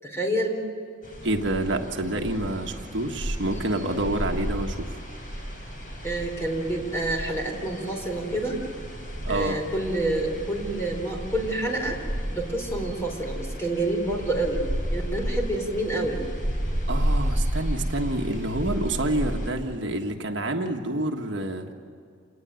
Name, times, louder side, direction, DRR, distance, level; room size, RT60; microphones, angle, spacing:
voice 1, 0.0-0.6 6.0-8.6 9.3-12.0 12.3-14.6 14.9-16.2, right 1 dB, 15° left, 1 dB, 4.3 m, -28 dB
sound 1, 1.0-19.5, equal, 40° left, 6.2 m, -32 dB
voice 2, 1.2-5.0 9.2-9.6 16.9-21.7, right 1 dB, 60° right, 3 dB, 1.6 m, -28 dB
28.0 x 20.0 x 9.2 m, 2.4 s
head